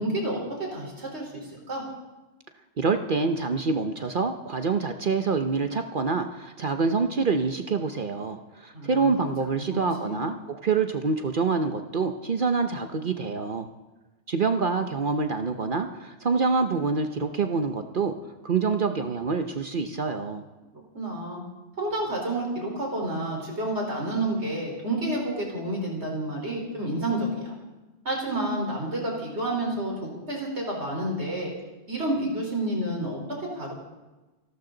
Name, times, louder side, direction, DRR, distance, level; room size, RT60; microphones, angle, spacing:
voice 1, 0.0-1.8 8.7-9.2 9.6-10.2 20.9-21.4 21.8-27.5 28.0-31.5 31.9-33.7, right 1 dB, 70° right, -1 dB, 4.5 m, -30 dB
voice 2, 2.8-13.7 14.3-18.1 18.4-20.4, right 4 dB, 50° right, 7 dB, 1.0 m, -26 dB
29.0 x 12.5 x 3.9 m, 1.1 s
omnidirectional pair, 1.2 m